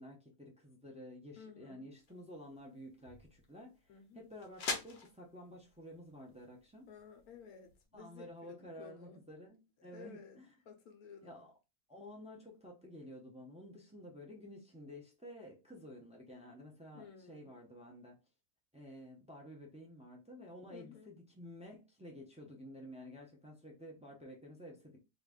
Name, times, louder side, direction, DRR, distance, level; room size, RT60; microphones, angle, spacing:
voice 1, 0.0-6.9 7.9-10.5 11.2-11.5 11.9-18.2 18.7-25.0, equal, 10° right, 0.3 m, -52 dB
voice 2, 1.4-1.9 3.9-4.2 6.9-9.2 9.9-10.4 10.7-11.4 16.9-17.5 20.7-21.1, left 7 dB, 90° left, 1.2 m, -54 dB
sound 1, 1.9-7.8, left 4 dB, 55° left, 0.8 m, -46 dB
3.0 x 2.5 x 3.5 m
omnidirectional pair, 1.6 m